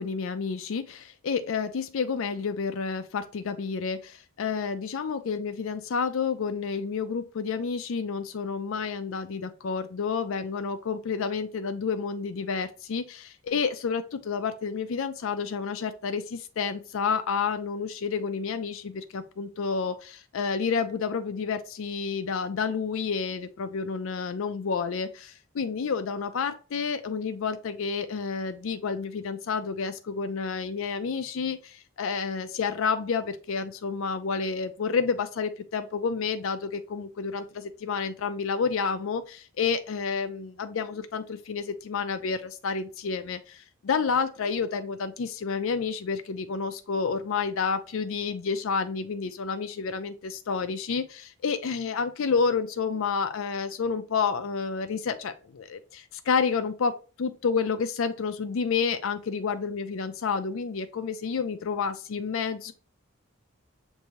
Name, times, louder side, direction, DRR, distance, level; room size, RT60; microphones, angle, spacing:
voice 1, 0.0-62.7, left 5 dB, 70° left, 0.4 m, -30 dB
6.6 x 2.7 x 2.9 m
head